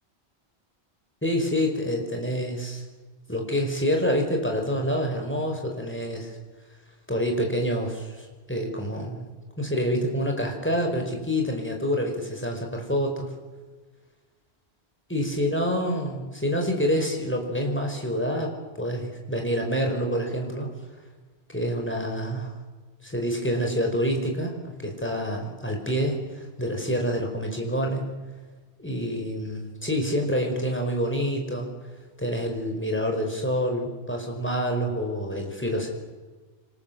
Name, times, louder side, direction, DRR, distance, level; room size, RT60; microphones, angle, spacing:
voice 1, 1.2-2.8 3.3-6.3 7.1-9.2 9.6-13.3 15.1-20.7 21.5-22.5 23.0-28.1 28.8-31.7 32.2-35.9, equal, 10° left, 2 dB, 5.2 m, -27 dB
27.5 x 26.0 x 7.8 m, 1.3 s
omnidirectional pair, 1.1 m